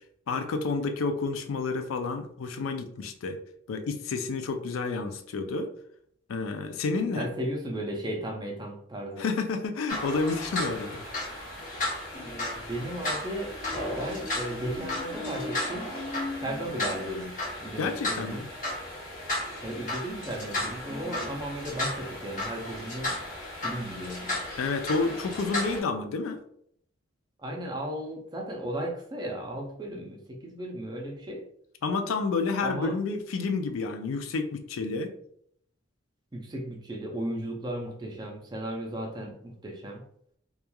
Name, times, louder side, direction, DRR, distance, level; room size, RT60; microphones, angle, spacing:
voice 1, 0.3-3.4 3.7-5.7 6.3-7.3 9.2-11.0 11.6-11.7 17.8-18.5 24.6-26.4 31.8-35.1, left 4 dB, 85° left, 7 dB, 0.4 m, -30 dB
voice 2, 7.1-9.3 12.7-13.5 13.9-15.9 16.3-17.3 17.6-18.5 19.6-23.2 23.6-24.3 27.4-31.4 32.6-32.9 36.3-40.0, right 1 dB, 20° right, 1 dB, 0.4 m, -35 dB
sound 1, 9.9-25.8, left 1 dB, 40° left, 0.7 m, -34 dB
3.0 x 2.3 x 2.2 m, 0.68 s
head